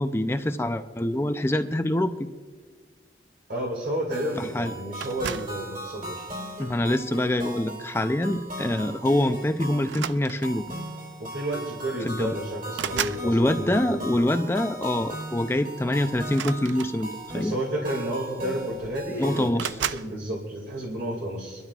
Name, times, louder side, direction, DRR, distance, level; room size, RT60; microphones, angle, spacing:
voice 1, 0.0-2.1 4.4-4.7 6.6-10.6 12.0-12.4 13.2-17.5 19.2-19.7, left 1 dB, 15° left, 8 dB, 0.4 m, -25 dB
voice 2, 3.5-6.3 11.2-14.1 17.3-21.6, right 1 dB, 70° right, -3 dB, 2.3 m, -31 dB
sound 1, 4.1-19.5, right 1 dB, 50° right, 3.6 m, -38 dB
sound 2, 5.0-5.6 6.5-6.8 8.3-8.5 8.8-9.0 9.8-10.7 11.7-11.8 12.1-13.3 16.3-17.4 18.3-18.4 18.6-19.1 19.6-20.1, right 9 dB, 90° right, 0.4 m, -34 dB
25.0 x 12.0 x 2.4 m, 1.5 s
head